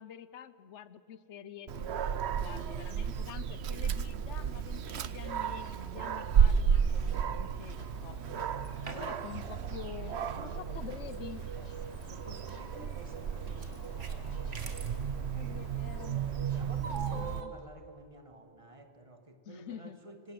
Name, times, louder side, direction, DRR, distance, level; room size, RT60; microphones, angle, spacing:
voice 1, 0.0-8.5 8.9-11.4 12.7-12.9 15.3-16.2 16.9-17.5 19.5-20.0, left 9 dB, 80° left, 15 dB, 1.1 m, -47 dB
Dog, 1.7-17.4, right 7 dB, 65° right, 1.0 m, -33 dB
sound 1, 7.7-17.2, left 2 dB, 35° left, 1.4 m, -52 dB
sound 2, 8.7-9.3 9.6-9.8 11.1-11.2 12.0-12.5 13.4-15.0 16.8-17.5, right 5 dB, 85° right, 2.2 m, -44 dB
voice 2, 8.9-9.5 10.3-15.7 16.1-20.3, right 2 dB, 25° right, 6 dB, 2.0 m, -52 dB
26.0 x 25.5 x 7.7 m, 2.4 s
omnidirectional pair, 1.2 m